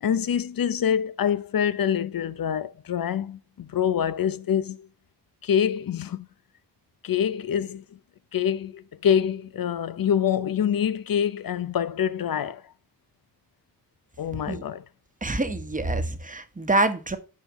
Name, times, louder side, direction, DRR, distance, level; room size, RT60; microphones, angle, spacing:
voice 1, 0.0-4.9 5.4-6.3 7.0-7.8 8.3-12.6 14.2-14.8, left 8 dB, 55° left, 0.7 m, -25 dB
voice 2, 15.2-17.2, right 2 dB, 20° right, 1.2 m, -26 dB
9.3 x 5.6 x 3.1 m
cardioid pair, 65°, 41 cm